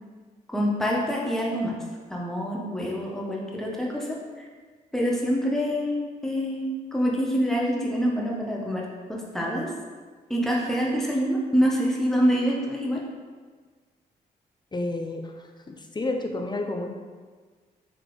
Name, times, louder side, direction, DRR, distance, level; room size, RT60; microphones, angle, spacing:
voice 1, 0.5-1.7 2.1-4.5 4.9-8.8 9.1-9.7 10.3-13.0, equal, ahead, -3 dB, 0.9 m, -26 dB
voice 2, 14.7-16.9, left 2 dB, 25° left, 4 dB, 0.6 m, -31 dB
4.1 x 2.9 x 3.1 m, 1.5 s
hypercardioid pair, 45°, 18 cm